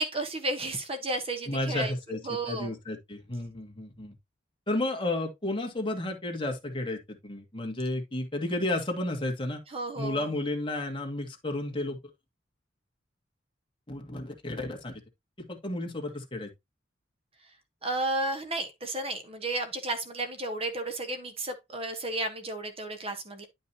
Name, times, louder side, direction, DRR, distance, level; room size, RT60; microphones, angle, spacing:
voice 1, 0.0-2.7 9.7-10.3 17.8-23.4, right 2 dB, 30° right, 1.2 m, -33 dB
voice 2, 1.5-2.2 2.5-4.1 4.7-9.6 10.0-12.0 13.9-15.0 15.5-16.5, left 1 dB, 25° left, 2.2 m, -32 dB
11.0 x 5.4 x 2.9 m
head